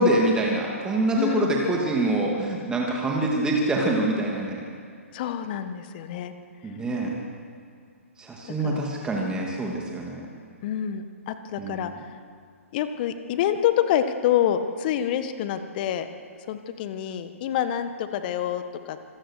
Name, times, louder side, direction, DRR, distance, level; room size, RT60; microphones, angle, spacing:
voice 1, 0.0-4.6 6.6-7.1 8.2-10.2 11.6-11.9, right 1 dB, 10° right, -1 dB, 2.6 m, -25 dB
voice 2, 1.1-1.5 5.1-6.3 8.6-8.8 10.6-12.1 12.7-16.1 16.5-19.0, left 10 dB, 40° left, 10 dB, 1.5 m, -27 dB
26.0 x 15.5 x 6.6 m, 2.2 s
figure-of-eight pair, 120°, 8 cm